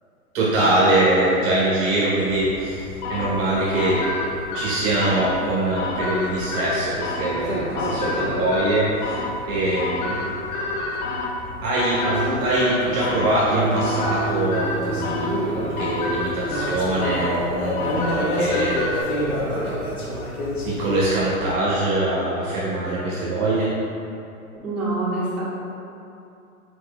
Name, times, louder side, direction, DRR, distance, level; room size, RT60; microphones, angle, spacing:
voice 1, 0.3-2.8 3.1-4.0 4.5-9.2 9.5-10.3 11.6-19.0 19.4-19.8 20.6-23.7, right 1 dB, 35° right, -7 dB, 0.9 m, -23 dB
sound 1, 2.3-21.6, left 1 dB, 85° left, 1.2 m, -31 dB
sound 2, 3.0-19.0, left 2 dB, 35° left, 0.4 m, -30 dB
sound 3, 13.5-20.0 20.5-21.0, right 3 dB, 75° right, 0.5 m, -32 dB
voice 2, 24.6-25.4, right 2 dB, 5° right, -13 dB, 1.4 m, -25 dB
4.5 x 4.3 x 2.2 m, 2.8 s
hypercardioid pair, 125°, 43 cm